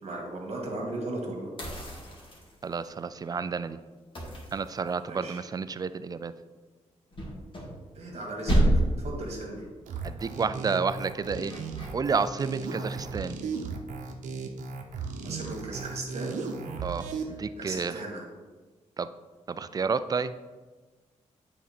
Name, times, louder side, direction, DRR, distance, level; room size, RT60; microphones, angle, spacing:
voice 1, 0.0-1.5 5.1-5.4 7.9-8.6 9.0-9.7 10.0-10.1 15.2-16.4 17.6-18.3, right 2 dB, 55° right, 0 dB, 2.0 m, -36 dB
sound 1, 1.6-2.9 4.1-5.3 7.1-8.2 8.5-9.1 11.5-11.9, right 1 dB, 40° left, 2.1 m, -28 dB
voice 2, 2.6-3.8 4.5-6.3 10.0-11.5 11.9-13.4 16.8-17.0 17.4-18.0 19.0-19.1 19.5-20.3, right 5 dB, 30° right, 13 dB, 0.4 m, -30 dB
sound 2, 9.9-17.2, right 5 dB, 85° right, 0.8 m, -36 dB
9.0 x 4.1 x 4.3 m, 1.3 s
cardioid pair, 90°, 13 cm